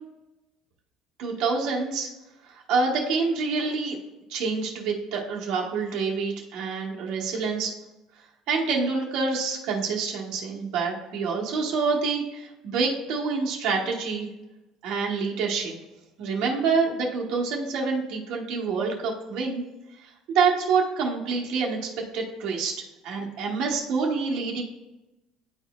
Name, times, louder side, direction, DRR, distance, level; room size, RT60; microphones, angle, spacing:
voice 1, 1.2-2.1 2.7-4.0 4.3-7.7 8.5-14.3 14.8-15.7 16.2-19.6 20.0-21.8 22.1-22.7 23.0-24.6, right 4 dB, 65° right, -1 dB, 1.2 m, -27 dB
10.0 x 4.1 x 2.3 m, 1.0 s
cardioid pair, 140°, 0 cm